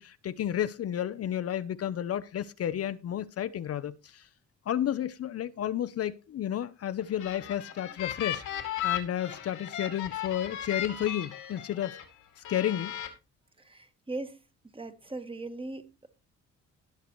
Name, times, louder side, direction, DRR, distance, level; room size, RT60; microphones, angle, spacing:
voice 1, 0.0-4.3 4.7-8.4 8.8-12.0 12.4-12.9, left 11 dB, 50° left, 0.6 m, -32 dB
sound 1, 7.0-12.0 12.5-13.1, left 11 dB, 85° left, 2.4 m, -36 dB
voice 2, 13.6-14.4 14.7-15.9, right 2 dB, 15° right, 1.5 m, -39 dB
18.0 x 6.7 x 3.1 m
cardioid pair, 90°, 30 cm